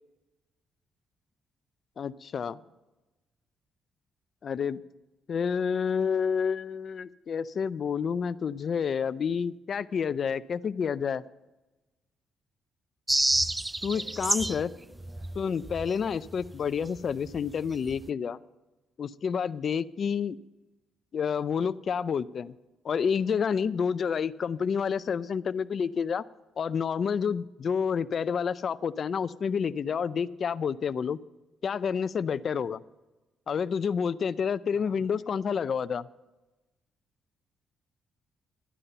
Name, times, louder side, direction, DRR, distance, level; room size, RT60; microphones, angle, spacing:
voice 1, 2.0-2.6 4.4-4.8 5.3-11.2 13.8-14.7 15.4-18.4 19.0-20.4 21.1-22.5 22.8-26.2 26.6-31.2 31.6-32.8 33.5-36.1, left 6 dB, 50° left, 16 dB, 0.5 m, -29 dB
sound 1, 13.1-14.7 15.0-16.6 16.8-17.0 17.3-17.5 17.8-18.1, right 1 dB, 15° right, 0.3 m, -29 dB
voice 2, 13.8-15.5 34.7-35.4, right 1 dB, 45° right, 2 dB, 4.8 m, -54 dB
12.5 x 9.9 x 5.6 m, 1.1 s
cardioid pair, 90°, 0 cm